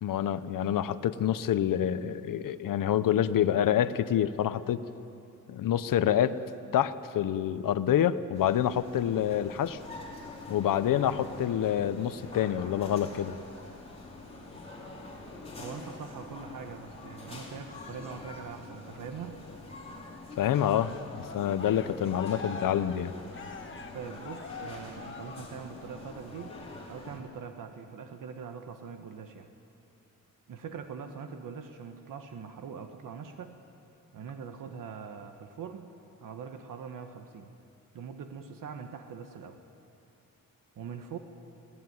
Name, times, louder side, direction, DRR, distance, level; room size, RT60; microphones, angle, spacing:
voice 1, 0.0-4.8 5.5-6.4 6.7-9.8 10.5-13.4 20.4-23.1, left 10 dB, 70° left, 13 dB, 0.9 m, -27 dB
sound 1, 8.3-27.2, left 2 dB, 20° left, 4.4 m, -45 dB
voice 2, 15.6-19.4 23.9-26.6 26.9-29.5 30.5-33.6 34.1-35.9 36.2-37.5 37.9-39.6 40.8-41.2, right 6 dB, 70° right, 6 dB, 1.3 m, -42 dB
Cheering, 20.6-25.9 26.3-26.7, left 5 dB, 35° left, 1.3 m, -45 dB
22.5 x 17.5 x 9.6 m, 2.7 s
wide cardioid pair, 140°, 34 cm